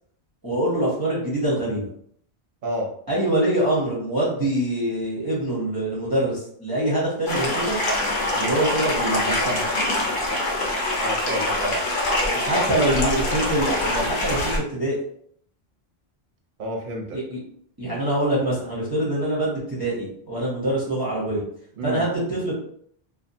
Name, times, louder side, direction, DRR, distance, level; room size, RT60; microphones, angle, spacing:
voice 1, 0.4-1.9 3.1-7.8 8.3-9.6 12.2-15.0 17.1-17.4 17.8-21.4 21.8-22.5, right 1 dB, 25° right, -7 dB, 0.7 m, -24 dB
sound 1, 7.3-14.6, left 1 dB, 55° left, 0.9 m, -24 dB
voice 2, 11.0-11.8 16.6-17.2 21.8-22.0, right 1 dB, 55° right, 1 dB, 0.8 m, -30 dB
2.6 x 2.4 x 2.6 m, 0.65 s
omnidirectional pair, 1.1 m